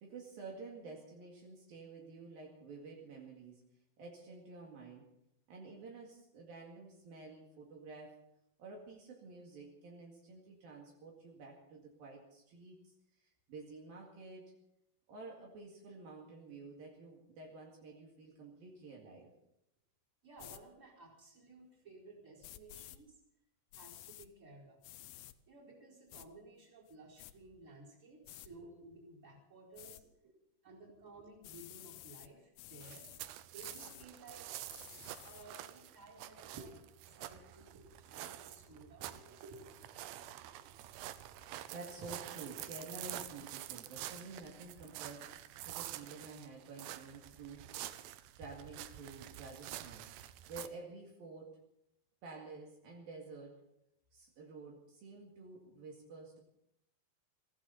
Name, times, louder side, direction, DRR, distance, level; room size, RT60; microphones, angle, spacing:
voice 1, 0.0-3.6 4.0-5.1 5.5-8.3 8.6-12.9 13.2-14.5 15.1-19.3 30.9-31.0 34.9-35.0 36.4-36.7 37.4-37.9 38.7-40.7 41.1-45.3 45.7-47.7 48.4-50.1 50.5-51.6 52.2-53.6 54.1-56.4, right 3 dB, 65° right, -1 dB, 3.8 m, -51 dB
voice 2, 20.2-23.2 23.7-24.8 25.5-30.0 30.6-33.1 33.5-34.5 35.2-36.7 37.1-37.7 38.1-39.4, right 2 dB, 20° right, -3 dB, 4.6 m, -56 dB
sound 1, 20.4-20.6 22.4-23.0 23.7-24.3 24.8-25.4 26.1-26.3 26.9-27.3 28.2-28.5 29.8-30.0 31.4-32.3 32.6-33.2 33.6-34.1 34.7-35.5, left 14 dB, 75° left, 2.3 m, -53 dB
sound 2, 32.8-50.7, right 13 dB, 85° right, 2.8 m, -48 dB
22.5 x 15.5 x 4.1 m, 0.79 s
omnidirectional pair, 4.6 m